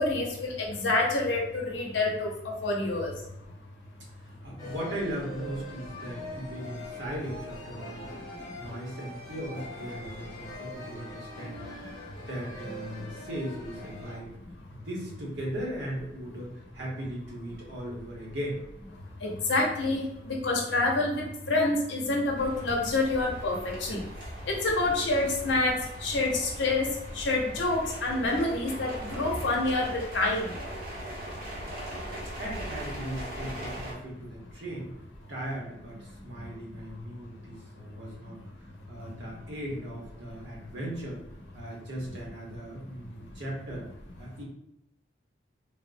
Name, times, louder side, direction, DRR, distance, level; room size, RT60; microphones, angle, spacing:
voice 1, 0.0-3.1 19.2-24.0 24.5-26.9 27.1-30.5 36.7-36.8, left 2 dB, 80° left, -1 dB, 0.7 m, -27 dB
voice 2, 4.2-8.2 8.6-11.7 12.2-14.3 14.7-18.6 32.4-34.9 35.3-38.4 38.9-41.2 41.5-43.9 44.2-44.4, equal, 75° right, -3 dB, 0.9 m, -38 dB
sound 1, 4.6-14.2, left 1 dB, 20° left, 0.7 m, -43 dB
sound 2, 22.4-33.9, equal, 50° right, 0.8 m, -40 dB
3.5 x 2.1 x 2.5 m, 0.84 s
head